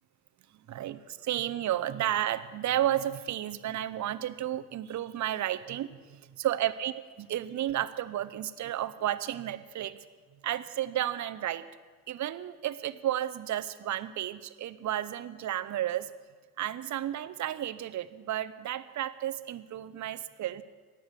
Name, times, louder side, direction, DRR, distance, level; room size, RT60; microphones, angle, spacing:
voice 1, 0.5-10.0 10.4-11.7 12.1-16.1 16.6-20.6, right 12 dB, 40° right, 14 dB, 0.9 m, -32 dB
14.5 x 9.6 x 7.8 m, 1.5 s
hypercardioid pair, 60°, 45 cm